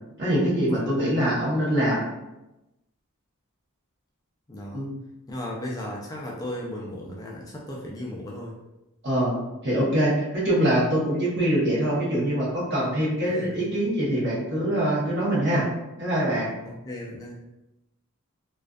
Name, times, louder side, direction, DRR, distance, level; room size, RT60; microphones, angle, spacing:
voice 1, 0.2-2.0 4.7-4.9 9.0-15.6 16.0-16.5, right 1 dB, 50° right, -6 dB, 0.9 m, -24 dB
voice 2, 0.7-1.0 4.5-4.9 5.3-8.5 13.3-13.7 16.6-17.4, left 1 dB, 15° left, -3 dB, 0.3 m, -36 dB
2.4 x 2.3 x 2.3 m, 0.96 s
head